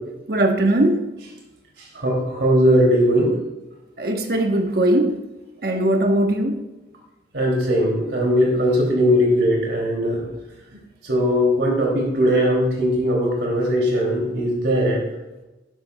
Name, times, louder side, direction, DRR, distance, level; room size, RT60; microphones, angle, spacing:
voice 1, 0.3-1.1 4.0-5.2 5.6-6.6, right 1 dB, 55° right, 4 dB, 1.1 m, -20 dB
voice 2, 1.9-3.4 7.3-10.2 11.0-15.0, equal, 85° right, -2 dB, 2.8 m, -19 dB
12.0 x 10.0 x 2.3 m, 1.0 s
head